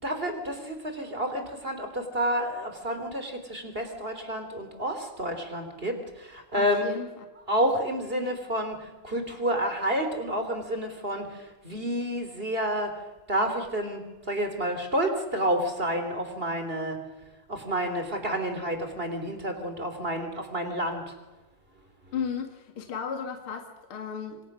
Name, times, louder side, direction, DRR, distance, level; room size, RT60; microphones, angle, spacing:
voice 1, 0.0-6.9 7.3-12.9 13.3-17.0 17.5-21.1 22.1-22.2, equal, 15° right, 6 dB, 2.7 m, -30 dB
voice 2, 6.5-7.2 22.1-24.4, left 6 dB, 40° left, 4 dB, 2.0 m, -35 dB
26.5 x 26.0 x 6.2 m, 1.2 s
omnidirectional pair, 5.2 m